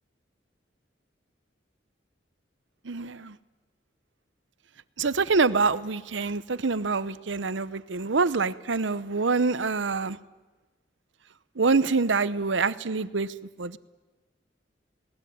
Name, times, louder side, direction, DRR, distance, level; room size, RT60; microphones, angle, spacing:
voice 1, 2.9-3.3 5.0-10.2 11.6-13.3 13.6-13.8, right 4 dB, 85° right, 16 dB, 0.8 m, -25 dB
20.5 x 19.0 x 9.4 m, 1.2 s
head